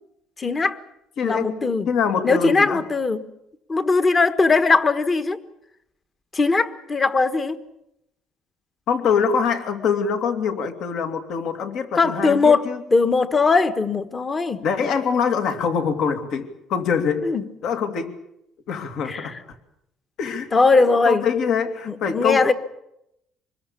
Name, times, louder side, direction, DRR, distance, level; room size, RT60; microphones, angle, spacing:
voice 1, 0.4-0.8 1.2-1.9 2.2-3.2 3.7-5.4 6.3-7.5 11.9-12.6 12.9-14.6 17.2-17.4 19.1-19.3 20.5-21.2 21.9-22.5, left 4 dB, 25° left, 11 dB, 1.4 m, -19 dB
voice 2, 1.2-1.5 1.9-2.8 8.9-12.8 14.6-17.3 17.6-18.1 18.7-19.4 20.2-20.5 21.1-22.5, left 6 dB, 60° left, 7 dB, 2.7 m, -24 dB
25.5 x 21.0 x 7.0 m, 0.81 s
cardioid pair, 140°, 0 cm